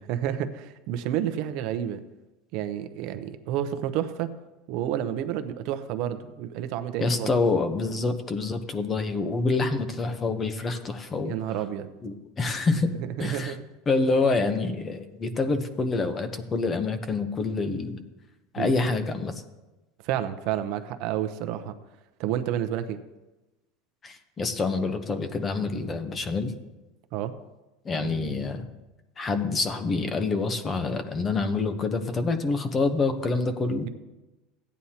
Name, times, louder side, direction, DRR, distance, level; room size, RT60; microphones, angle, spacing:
voice 1, 0.1-2.0 2.5-4.3 4.7-7.3 11.2-11.9 13.2-13.6 18.6-18.7 20.0-21.7 22.2-23.0 27.1-27.3, right 11 dB, 55° right, 9 dB, 0.8 m, -30 dB
voice 2, 7.0-11.3 12.0-12.9 13.2-13.6 13.9-18.0 18.5-19.4 24.0-26.5 27.8-28.7 29.2-33.8, left 3 dB, 20° left, 9 dB, 0.9 m, -27 dB
15.5 x 9.4 x 2.9 m, 1.1 s
supercardioid pair, 140°, 0 cm